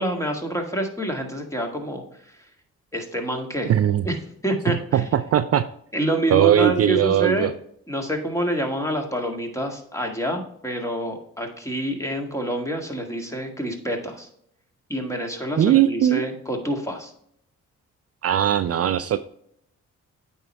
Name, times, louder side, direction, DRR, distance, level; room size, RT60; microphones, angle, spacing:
voice 1, 0.0-2.0 2.9-3.7 4.0-4.2 4.4-5.0 5.9-7.5 7.9-14.3 14.9-17.1, right 1 dB, 10° left, 3 dB, 1.9 m, -27 dB
voice 2, 3.7-4.1 4.9-5.7 6.3-7.5 15.6-16.2 18.2-19.2, right 11 dB, 50° right, 11 dB, 0.4 m, -19 dB
8.8 x 4.5 x 3.3 m, 0.68 s
supercardioid pair, 55°, 32 cm